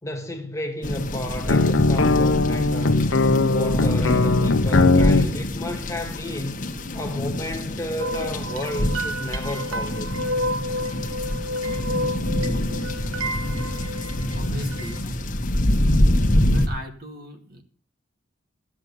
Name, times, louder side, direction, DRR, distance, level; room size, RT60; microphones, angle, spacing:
voice 1, 0.0-3.1 3.4-6.6 6.9-10.1, left 1 dB, 15° left, 1.7 m, -32 dB
sound 1, 0.8-16.7, left 1 dB, 40° left, 1.4 m, -25 dB
sound 2, 1.5-5.3, left 3 dB, 70° left, 0.9 m, -19 dB
sound 3, 8.0-15.0, equal, 85° right, 1.4 m, -30 dB
voice 2, 14.3-15.2 16.4-17.6, equal, 45° right, 2.2 m, -37 dB
14.0 x 7.4 x 8.2 m
head